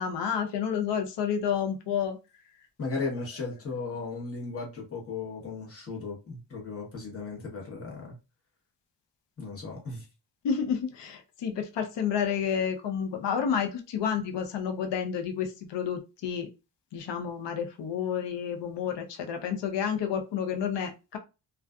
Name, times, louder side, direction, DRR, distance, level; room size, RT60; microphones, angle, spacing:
voice 1, 0.0-2.2 10.4-16.5 16.9-21.2, left 7 dB, 65° left, 0.6 m, -30 dB
voice 2, 2.8-8.1 9.4-10.1, left 4 dB, 30° left, 1.0 m, -36 dB
2.4 x 2.3 x 2.3 m
cardioid pair, 100°, 46 cm